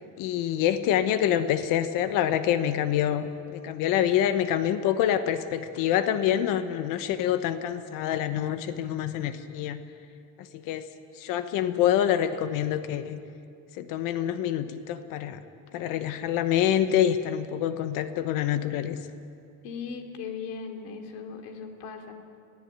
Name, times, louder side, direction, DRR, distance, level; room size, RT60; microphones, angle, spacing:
voice 1, 0.2-9.8 10.4-10.8 11.2-13.2 13.8-15.4 15.7-19.0, left 10 dB, 65° left, 10 dB, 1.1 m, -26 dB
voice 2, 19.6-22.1, left 5 dB, 85° left, 4 dB, 2.9 m, -38 dB
22.5 x 15.5 x 8.9 m, 2.4 s
cardioid pair, 150°, 35 cm